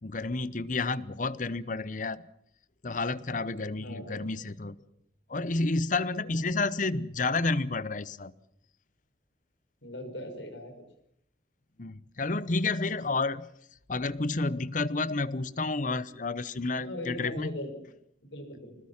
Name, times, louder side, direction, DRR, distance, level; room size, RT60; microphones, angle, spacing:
voice 1, 0.0-2.3 2.8-4.8 5.3-8.3 11.8-13.5 13.9-17.5, left 3 dB, 45° left, 18 dB, 0.8 m, -30 dB
voice 2, 3.8-4.3 6.3-6.4 9.8-10.7 16.8-17.8 18.2-18.7, left 1 dB, 80° left, 6 dB, 5.8 m, -39 dB
26.0 x 20.0 x 7.4 m, 0.72 s
head